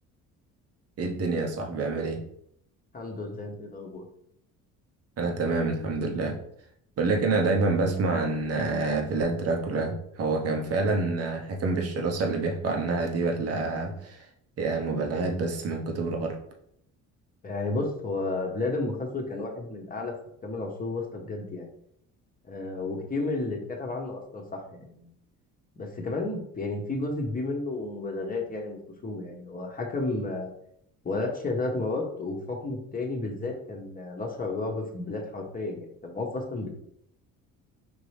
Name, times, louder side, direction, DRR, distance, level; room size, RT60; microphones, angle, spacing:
voice 1, 1.0-2.2 5.2-6.4 7.0-14.2 14.6-16.4, right 3 dB, 45° right, 2 dB, 1.0 m, -27 dB
voice 2, 2.9-4.0 17.4-20.1 20.4-21.7 22.5-25.1 25.8-30.5 31.0-36.7, left 2 dB, 25° left, 1 dB, 1.2 m, -32 dB
5.3 x 2.9 x 3.4 m, 0.70 s
cardioid pair, 100°, 34 cm